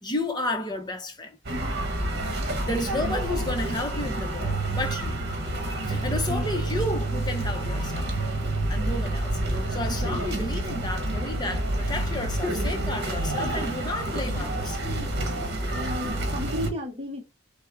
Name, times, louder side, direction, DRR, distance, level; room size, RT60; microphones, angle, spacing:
voice 1, 0.0-1.4 2.4-5.2 5.9-8.2 8.7-9.4 9.7-14.8, left 2 dB, 20° left, 0.7 m, -32 dB
sound 1, 1.4-16.7, right 1 dB, 50° right, 1.2 m, -28 dB
voice 2, 6.3-6.6 14.2-15.0 15.4-17.3, left 1 dB, 25° right, 0.8 m, -35 dB
6.2 x 2.1 x 3.5 m
head